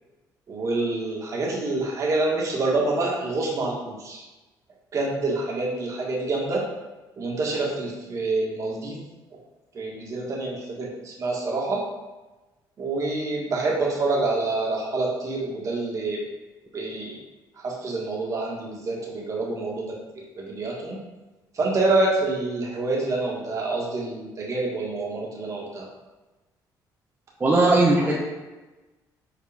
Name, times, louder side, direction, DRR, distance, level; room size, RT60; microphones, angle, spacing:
voice 1, 0.5-4.2 4.9-6.6 7.2-9.0 9.7-11.8 12.8-16.2 16.7-17.2 17.6-19.9 20.4-21.1 21.5-25.9, right 2 dB, 45° right, -3 dB, 1.8 m, -27 dB
voice 2, 27.4-28.1, right 2 dB, 20° right, -5 dB, 1.0 m, -18 dB
7.2 x 4.2 x 3.5 m, 1.1 s
cardioid pair, 120°, 8 cm